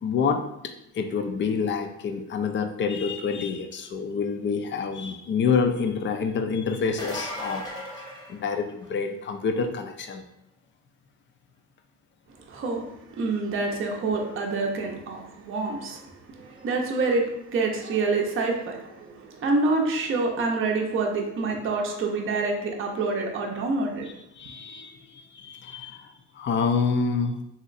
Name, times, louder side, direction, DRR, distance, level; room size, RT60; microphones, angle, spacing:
voice 1, 0.0-7.7 8.3-10.2 24.4-27.4, left 5 dB, 40° left, 6 dB, 0.4 m, -27 dB
sound 1, 6.8-9.0 14.6-14.7 16.5-16.6, left 1 dB, 15° left, 0.8 m, -36 dB
voice 2, 12.5-24.1, right 3 dB, 45° right, 1 dB, 0.6 m, -27 dB
2.9 x 2.7 x 2.5 m, 0.82 s
cardioid pair, 90°, 30 cm